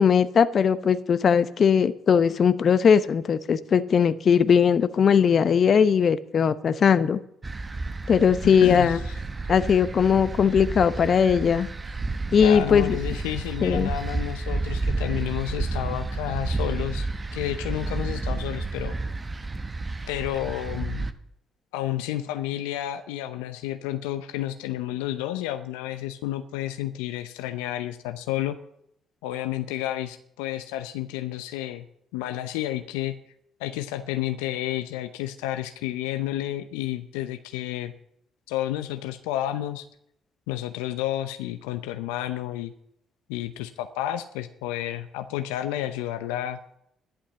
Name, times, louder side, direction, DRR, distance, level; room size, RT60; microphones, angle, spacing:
voice 1, 0.0-7.2 8.1-9.0 9.5-11.7 12.3-13.0 13.6-13.9, left 7 dB, 50° left, 14 dB, 0.9 m, -19 dB
sound 1, 7.4-21.1, right 3 dB, 30° right, 1.2 m, -31 dB
voice 2, 8.6-9.1 9.4-9.5 12.4-19.0 20.1-21.0 21.7-28.6 29.2-31.9 32.1-33.1 33.6-37.9 38.5-39.9 40.5-42.7 43.3-46.8, left 13 dB, 85° left, 9 dB, 0.7 m, -31 dB
11.5 x 11.5 x 6.9 m, 0.73 s
hypercardioid pair, 50°, 0 cm